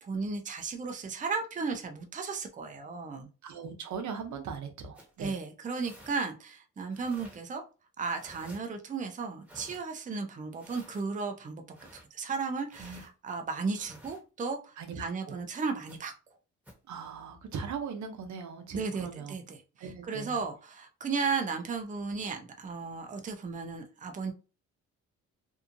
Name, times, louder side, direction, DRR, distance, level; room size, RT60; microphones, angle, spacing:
voice 1, 0.0-3.3 5.2-7.6 8.0-11.6 12.1-16.1 18.7-24.3, right 4 dB, 25° right, 5 dB, 0.6 m, -35 dB
voice 2, 3.4-5.4 12.8-13.0 14.8-15.4 16.9-19.3 19.8-20.4, right 6 dB, 70° right, 6 dB, 0.7 m, -39 dB
sound 1, 4.9-5.1 5.8-6.2 6.9-7.4 8.1-8.6 9.4-9.8 10.5-11.0 11.7-12.0 12.7-13.1 13.7-14.2 15.8-16.0 16.6-16.7 17.5-17.7, equal, 5° right, 1.2 m, -52 dB
2.7 x 2.3 x 2.5 m, 0.33 s
cardioid pair, 90°, 30 cm